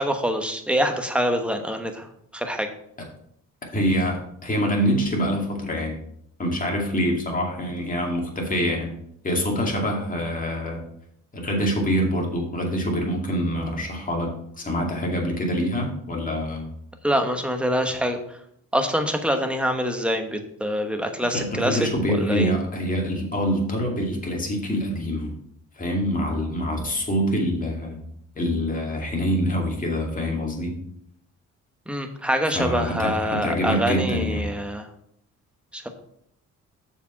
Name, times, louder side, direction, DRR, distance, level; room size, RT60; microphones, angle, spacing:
voice 1, 0.0-2.7 17.0-18.4 18.7-21.9 22.2-22.5 31.9-34.9 35.7-35.9, equal, 5° right, 5 dB, 1.1 m, -25 dB
voice 2, 3.7-6.0 6.4-8.9 9.2-10.8 11.3-16.7 21.3-25.3 25.8-28.0 28.4-30.8 32.5-34.5, equal, 25° left, 0 dB, 2.4 m, -25 dB
6.8 x 4.9 x 5.8 m, 0.71 s
cardioid pair, 90°, 30 cm